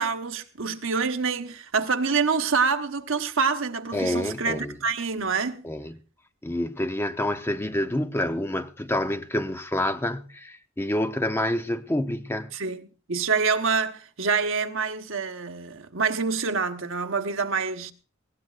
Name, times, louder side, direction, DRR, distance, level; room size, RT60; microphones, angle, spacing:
voice 1, 0.0-5.6 12.5-17.9, right 5 dB, 70° right, 1.1 m, -26 dB
voice 2, 3.9-4.7 5.6-6.0 6.4-12.5, left 1 dB, 10° left, 0.6 m, -28 dB
20.0 x 17.0 x 2.4 m
head